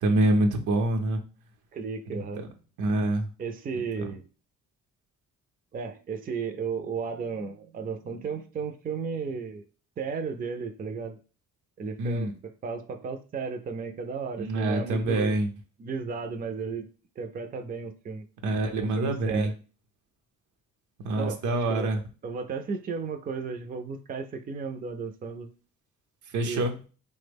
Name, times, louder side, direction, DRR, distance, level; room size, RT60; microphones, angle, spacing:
voice 1, 0.0-1.2 2.2-2.5 2.8-3.3 4.0-4.1 12.0-12.3 14.4-15.5 18.4-19.5 21.0-22.0 26.3-26.8, right 2 dB, 80° right, 4 dB, 0.7 m, -26 dB
voice 2, 1.7-2.4 3.4-4.2 5.7-9.6 10.0-11.2 11.8-15.4 15.8-16.9 17.2-18.2 18.8-19.5 21.2-21.4 21.7-21.9 22.2-25.5 26.4-26.7, right 5 dB, 30° right, 6 dB, 0.4 m, -34 dB
3.3 x 2.1 x 3.4 m, 0.36 s
cardioid pair, 90°, 30 cm